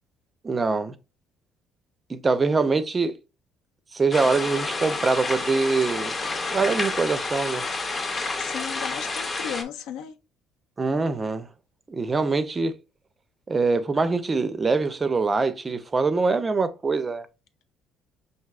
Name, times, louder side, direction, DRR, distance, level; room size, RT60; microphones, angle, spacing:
voice 1, 0.4-0.9 2.1-3.2 3.9-6.1 6.5-7.7 10.8-11.5 11.9-12.7 13.5-17.3, right 4 dB, 20° right, 0.4 m, -24 dB
sound 1, 4.1-9.6, left 3 dB, 25° left, 0.6 m, -29 dB
voice 2, 8.4-10.1, left 8 dB, 85° left, 0.4 m, -35 dB
5.8 x 2.7 x 2.3 m
cardioid pair, 135°, 0 cm